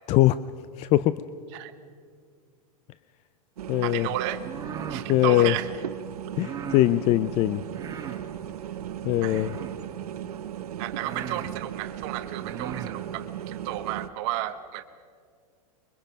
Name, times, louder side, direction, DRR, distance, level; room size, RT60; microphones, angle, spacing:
voice 1, 0.1-0.4 0.8-1.2 3.7-4.1 5.1-5.6 6.4-7.6 9.0-9.5, left 15 dB, 35° left, 15 dB, 0.4 m, -21 dB
sound 1, 3.6-14.1, right 10 dB, 90° right, 0.9 m, -37 dB
voice 2, 3.8-4.4 4.9-5.7 9.2-9.6 10.8-14.8, right 14 dB, 50° right, 9 dB, 1.0 m, -33 dB
sound 2, 4.3-5.1 6.3-6.9 7.7-8.3 9.3-9.9 10.5-10.6 11.0-11.5 12.3-13.0, right 7 dB, 20° right, 1.6 m, -38 dB
24.0 x 23.0 x 5.3 m, 2.1 s
hypercardioid pair, 130°, 19 cm